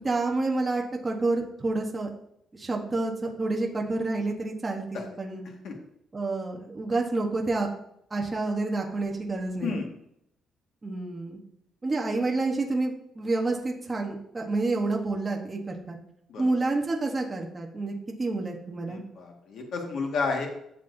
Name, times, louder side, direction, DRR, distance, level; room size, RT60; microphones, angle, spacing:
voice 1, 0.0-2.1 2.5-5.5 6.1-7.7 8.1-9.8 10.8-11.4 11.8-16.0 16.4-17.9 18.2-19.0, right 2 dB, 15° right, 0 dB, 1.1 m, -29 dB
voice 2, 18.9-20.5, left 4 dB, 60° left, 1 dB, 1.7 m, -31 dB
12.5 x 7.4 x 2.7 m, 0.73 s
cardioid pair, 170°, 0 cm